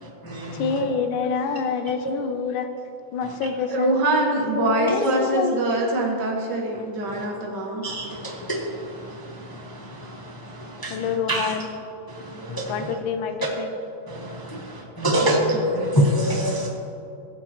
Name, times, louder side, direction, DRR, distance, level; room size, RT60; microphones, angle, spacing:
voice 1, 0.0-0.7 7.1-7.2 7.8-11.5 12.1-12.9 14.1-16.7, equal, 15° left, -2 dB, 0.8 m, -26 dB
voice 2, 0.5-2.7 3.1-5.6 10.9-11.7 12.7-13.7, left 6 dB, 90° left, 7 dB, 1.5 m, -27 dB
voice 3, 3.7-7.8, right 1 dB, 65° right, -1 dB, 2.1 m, -23 dB
17.0 x 7.3 x 2.9 m, 2.7 s
omnidirectional pair, 2.1 m